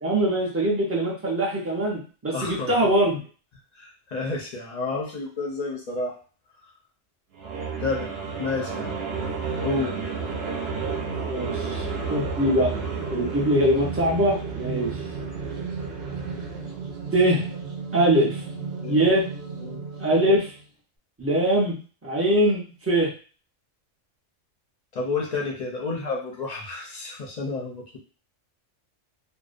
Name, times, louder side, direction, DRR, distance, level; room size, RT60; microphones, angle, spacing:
voice 1, 0.0-3.2 11.3-12.7 13.1-14.9 17.1-17.4 17.9-18.4 18.9-19.3 20.0-20.5 21.2-21.8 22.0-23.1, right 1 dB, 20° right, -4 dB, 0.3 m, -22 dB
voice 2, 2.3-2.7 3.8-6.2 7.8-8.1 8.4-9.0 9.6-10.0 18.8-19.0 19.6-19.8 20.1-20.2 24.9-28.0, left 3 dB, 45° left, -1 dB, 0.5 m, -30 dB
sound 1, 7.3-20.6, right 5 dB, 60° right, 0.8 m, -32 dB
2.5 x 2.0 x 2.5 m, 0.38 s
omnidirectional pair, 1.3 m